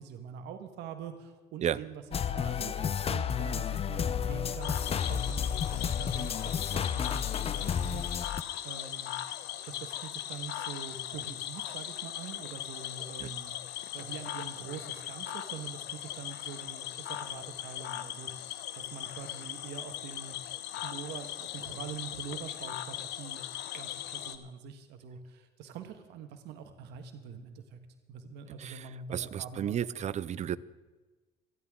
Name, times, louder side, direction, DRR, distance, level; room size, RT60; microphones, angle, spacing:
voice 1, 0.0-9.1 9.6-13.6 13.9-20.4 20.8-23.4 23.7-27.8 28.1-29.9, right 7 dB, 85° right, 7 dB, 1.5 m, -45 dB
sound 1, 2.1-8.4, left 8 dB, 35° left, 0.6 m, -31 dB
Cricket / Frog, 4.6-24.4, left 12 dB, 80° left, 1.0 m, -39 dB
voice 2, 28.6-30.6, right 9 dB, 45° right, 19 dB, 0.5 m, -33 dB
26.5 x 11.0 x 3.7 m, 1.2 s
cardioid pair, 110°, 17 cm